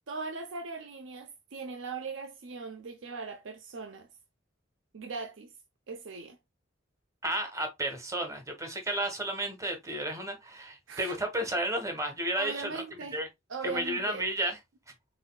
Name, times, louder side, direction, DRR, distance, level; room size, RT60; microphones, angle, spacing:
voice 1, 0.1-4.1 4.9-5.5 5.9-6.4 10.9-11.2 12.4-13.2 13.5-14.2, right 4 dB, 70° right, 0.6 m, -39 dB
voice 2, 7.2-12.8 13.1-13.3 13.6-14.6, right 1 dB, 15° right, 1.0 m, -32 dB
4.0 x 3.9 x 2.2 m
head